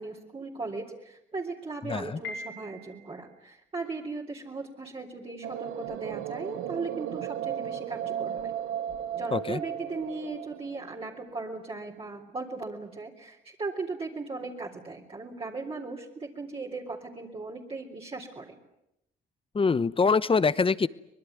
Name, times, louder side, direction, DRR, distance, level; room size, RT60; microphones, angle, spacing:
voice 1, 0.0-8.5 9.2-18.6, right 3 dB, 30° right, -2 dB, 3.7 m, -37 dB
voice 2, 1.9-2.2 9.3-9.6 19.5-20.9, left 4 dB, 25° left, 17 dB, 0.9 m, -24 dB
Piano, 2.2-3.3, left 2 dB, 80° left, 7.3 m, -41 dB
sound 1, 5.4-11.2, right 10 dB, 85° right, 1.2 m, -35 dB
24.5 x 21.0 x 9.5 m, 0.85 s
cardioid pair, 90°, 20 cm